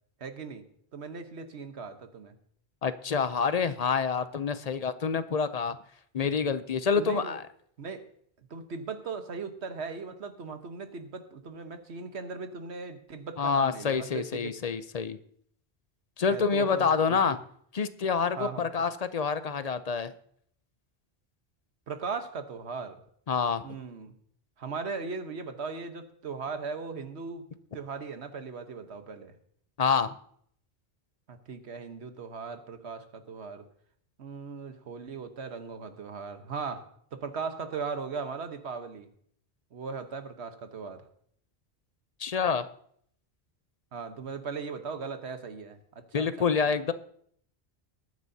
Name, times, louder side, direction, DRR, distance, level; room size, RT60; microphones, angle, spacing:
voice 1, 0.2-0.7 0.9-2.4 7.0-7.4 7.8-8.0 8.5-14.5 16.3-17.4 18.4-18.7 21.9-23.0 23.6-24.2 24.6-27.5 27.7-29.3 31.3-33.7 34.2-39.1 39.7-41.0 43.9-46.8, right 5 dB, 80° right, 8 dB, 1.4 m, -38 dB
voice 2, 2.8-5.8 6.1-7.4 13.4-15.2 16.2-17.4 17.7-20.1 23.3-23.6 29.8-30.1 42.2-42.6 46.1-46.9, left 5 dB, 45° left, 12 dB, 0.6 m, -27 dB
20.5 x 9.4 x 2.8 m, 0.64 s
omnidirectional pair, 1.1 m